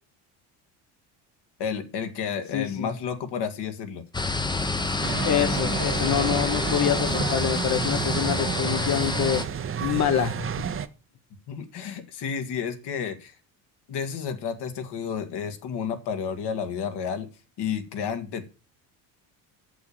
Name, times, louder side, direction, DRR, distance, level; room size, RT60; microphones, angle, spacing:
voice 1, 1.6-4.0 11.5-13.4 13.9-17.3 17.6-18.5, left 7 dB, 60° left, 1.9 m, -31 dB
voice 2, 2.5-2.9 5.2-9.4 9.8-10.8, left 10 dB, 35° left, 1.0 m, -26 dB
sound 1, 4.1-9.5, left 3 dB, 10° left, 0.8 m, -28 dB
sound 2, 5.0-10.9, right 8 dB, 25° right, 0.7 m, -31 dB
6.9 x 6.1 x 6.7 m
supercardioid pair, 100°, 47 cm